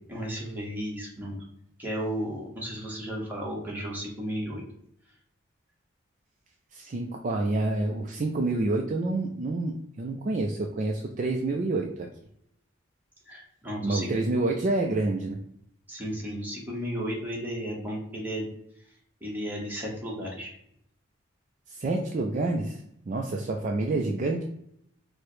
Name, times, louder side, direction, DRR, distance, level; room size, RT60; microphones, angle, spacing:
voice 1, 0.1-1.4 1.8-4.6 13.3-14.1 15.9-18.5 19.2-20.5, equal, 10° right, -4 dB, 1.0 m, -34 dB
voice 2, 6.7-12.1 13.8-15.4 21.7-24.4, right 2 dB, 40° right, 2 dB, 0.3 m, -28 dB
4.6 x 2.1 x 3.0 m, 0.72 s
head